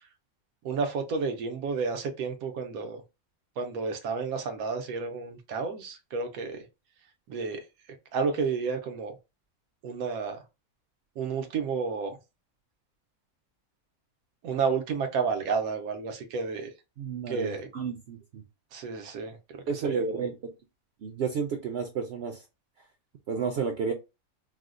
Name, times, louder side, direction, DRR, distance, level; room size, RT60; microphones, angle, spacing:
voice 1, 0.6-3.0 3.6-6.6 7.3-7.6 8.1-9.1 9.8-10.4 11.2-12.2 14.4-16.7 17.3-17.7 18.7-19.4 19.7-20.0, right 5 dB, 90° right, 1.1 m, -31 dB
voice 2, 17.0-18.4 19.7-20.4 21.0-22.4 23.3-23.9, right 5 dB, 65° right, 0.7 m, -31 dB
4.6 x 2.0 x 2.4 m
omnidirectional pair, 1.5 m